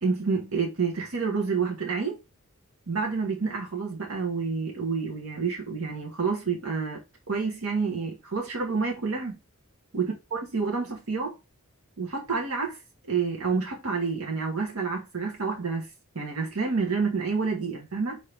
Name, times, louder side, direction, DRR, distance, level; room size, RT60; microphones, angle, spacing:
voice 1, 0.0-2.2 2.9-7.0 7.3-9.4 9.9-11.4 12.0-12.8 13.1-15.9 16.1-18.2, right 4 dB, 75° right, 1.1 m, -28 dB
4.4 x 2.8 x 3.3 m
head